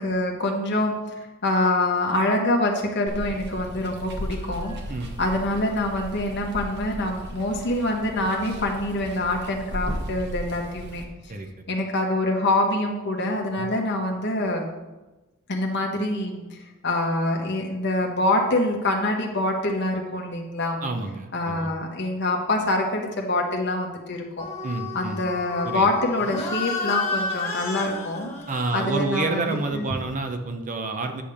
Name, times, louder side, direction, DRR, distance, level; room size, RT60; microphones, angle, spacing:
voice 1, 0.0-4.8 5.2-11.0 11.7-14.7 15.5-20.8 21.3-24.5 24.9-28.3 28.7-29.9, left 1 dB, 55° left, 1 dB, 1.3 m, -25 dB
Water, 3.1-11.0, equal, 55° right, 1.2 m, -36 dB
voice 2, 20.8-21.7 24.6-25.2 25.6-25.9 28.5-31.2, right 3 dB, 35° right, 5 dB, 0.7 m, -29 dB
sound 1, 24.4-30.2, left 4 dB, 15° left, 2.1 m, -32 dB
10.0 x 3.4 x 7.0 m, 1.1 s
head